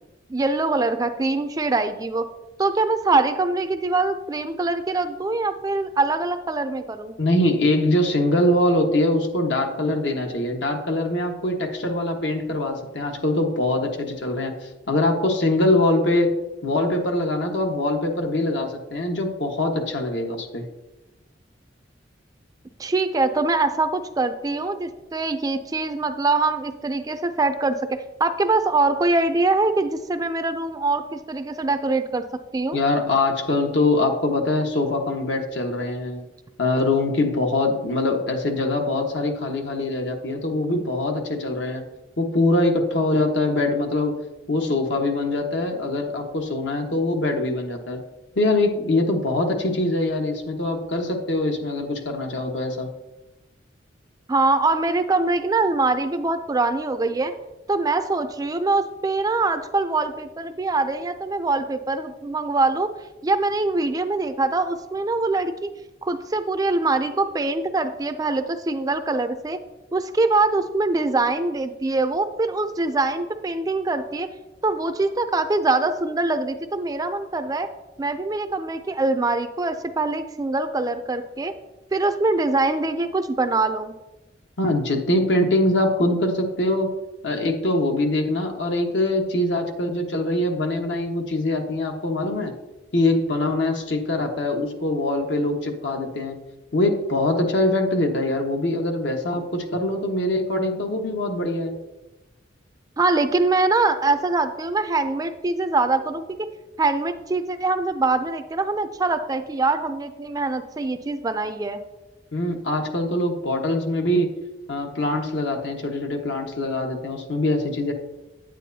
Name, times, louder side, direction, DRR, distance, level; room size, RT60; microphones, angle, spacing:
voice 1, 0.3-2.3 2.6-7.2 22.8-32.2 32.5-32.8 54.3-57.3 57.7-62.9 63.2-65.7 66.0-69.6 69.9-74.3 74.6-77.7 78.0-81.5 81.9-84.0 103.0-106.3 106.8-111.8, right 3 dB, 20° right, 9 dB, 0.4 m, -23 dB
voice 2, 7.2-16.3 16.6-20.6 32.7-36.2 36.6-41.8 42.2-44.1 44.5-48.0 48.4-52.9 84.6-86.9 87.2-92.5 92.9-96.4 96.7-101.7 112.3-114.3 114.7-117.9, left 2 dB, 75° left, 3 dB, 1.3 m, -23 dB
9.2 x 9.1 x 2.7 m, 1.0 s
head